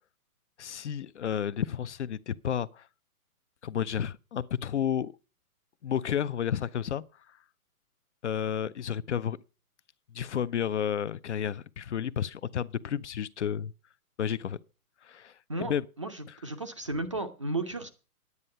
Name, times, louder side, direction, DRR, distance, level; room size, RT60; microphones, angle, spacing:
voice 1, 0.6-2.9 3.6-5.1 5.8-7.0 8.2-9.4 10.1-13.7 14.2-14.6 15.0-15.3 15.6-15.8, left 9 dB, 50° left, 0.5 m, -31 dB
voice 2, 16.0-17.9, right 2 dB, 20° right, 0.5 m, -34 dB
9.9 x 9.5 x 5.5 m
hypercardioid pair, 160°, 46 cm